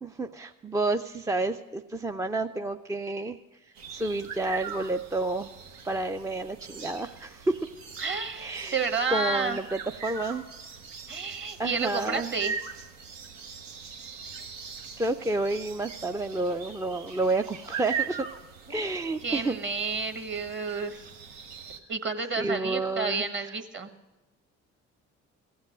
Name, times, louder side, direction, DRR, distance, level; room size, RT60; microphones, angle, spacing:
voice 1, 0.0-3.4 3.9-5.5 5.8-7.6 8.4-8.8 9.1-10.4 11.6-12.3 15.0-18.3 18.7-19.6 22.4-23.5, right 2 dB, 10° right, 7 dB, 0.3 m, -30 dB
sound 1, 3.8-21.8, right 6 dB, 80° right, 0.9 m, -41 dB
voice 2, 8.0-9.6 11.1-12.5 18.7-21.1 21.9-23.9, right 4 dB, 30° right, 8 dB, 1.3 m, -31 dB
16.0 x 7.3 x 7.6 m, 1.1 s
hypercardioid pair, 50°, 36 cm